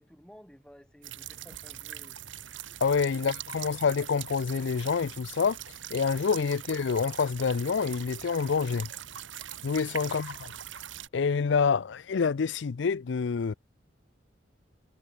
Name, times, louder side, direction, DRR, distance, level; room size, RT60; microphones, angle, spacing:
voice 1, 0.0-2.2 9.7-10.1, equal, 5° left, 2.0 m, -55 dB
sound 1, 1.0-11.1, right 11 dB, 85° right, 1.5 m, -42 dB
voice 2, 2.8-5.6 5.9-8.9 9.6-10.5 11.1-13.5, left 5 dB, 75° left, 0.5 m, -27 dB
head